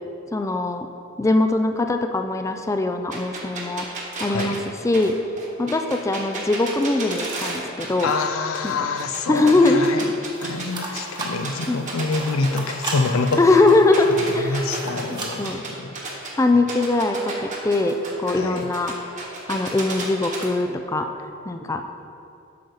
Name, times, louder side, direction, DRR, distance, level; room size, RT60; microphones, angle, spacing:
voice 1, 0.3-0.9 1.2-3.9 4.2-4.6 4.8-5.2 5.6-8.1 8.6-8.9 9.3-9.8 11.7-12.0 13.4-14.6 15.1-15.6 16.4-18.9 19.5-21.1 21.5-21.8, left 2 dB, 15° left, 6 dB, 0.3 m, -21 dB
sound 1, 3.1-8.3 8.5-10.7 10.9-16.3 16.7-20.5, right 3 dB, 40° right, 1.3 m, -33 dB
voice 2, 4.3-4.6 8.0-10.1 10.4-13.6 14.2-15.9 18.3-18.7, left 4 dB, 85° left, 8 dB, 0.5 m, -26 dB
sound 2, 10.3-15.5, right 2 dB, 25° right, 1.0 m, -35 dB
8.5 x 6.4 x 4.0 m, 2.5 s
head